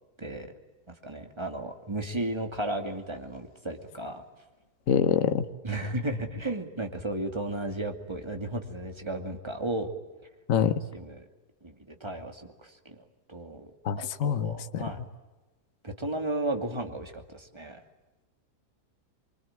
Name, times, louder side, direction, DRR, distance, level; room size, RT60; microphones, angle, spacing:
voice 1, 0.2-0.5 1.0-4.2 5.6-9.9 10.6-11.2 11.6-15.0 15.8-17.8, right 1 dB, 15° right, 5 dB, 2.5 m, -34 dB
voice 2, 4.9-5.5 10.5-10.8 13.8-14.8, left 8 dB, 55° left, 10 dB, 1.4 m, -25 dB
25.0 x 25.0 x 9.0 m, 1.2 s
omnidirectional pair, 1.7 m